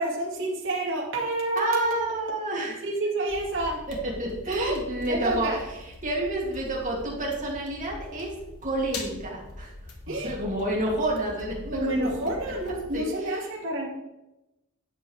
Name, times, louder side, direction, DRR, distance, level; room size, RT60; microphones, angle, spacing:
voice 1, 0.0-2.1 2.8-3.8 4.5-4.8 5.1-5.6 10.1-10.3 11.7-13.9, right 2 dB, 60° right, -3 dB, 2.2 m, -28 dB
voice 2, 1.6-2.8 3.9-5.5 5.8-8.3 8.6-9.7 10.1-12.1 12.9-13.5, right 1 dB, 35° right, -3 dB, 2.7 m, -29 dB
sound 1, 3.3-13.0, left 2 dB, 90° left, 1.7 m, -43 dB
10.5 x 8.1 x 3.4 m, 0.95 s
head